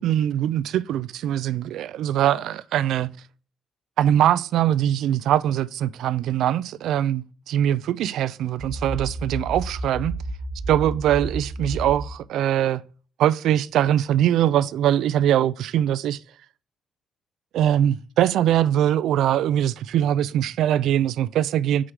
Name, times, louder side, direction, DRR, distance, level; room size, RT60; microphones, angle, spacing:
voice 1, 0.0-3.2 4.0-10.2 10.7-12.8 13.2-16.2 17.5-21.9, right 11 dB, 80° right, 0.4 m, -22 dB
sound 1, 8.6-12.1, right 2 dB, 40° right, 0.8 m, -31 dB
6.2 x 4.9 x 5.8 m
cardioid pair, 90°, 0 cm